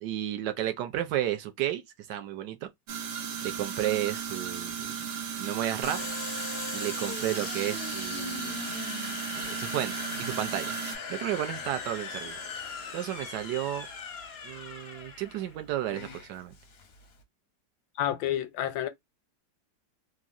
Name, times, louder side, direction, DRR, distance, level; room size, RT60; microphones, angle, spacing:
voice 1, 0.0-1.8 2.1-2.7 3.4-4.9 5.4-6.1 6.7-8.7 9.3-10.7 11.1-12.4 12.9-13.9 14.4-16.5, right 12 dB, 75° right, 1.1 m, -32 dB
sound 1, 2.9-11.0, right 7 dB, 90° right, 1.6 m, -36 dB
Domestic sounds home sounds, 5.8-17.2, left 5 dB, 60° left, 0.6 m, -39 dB
voice 2, 18.0-18.9, left 11 dB, 85° left, 1.3 m, -29 dB
3.6 x 2.1 x 2.4 m
omnidirectional pair, 2.0 m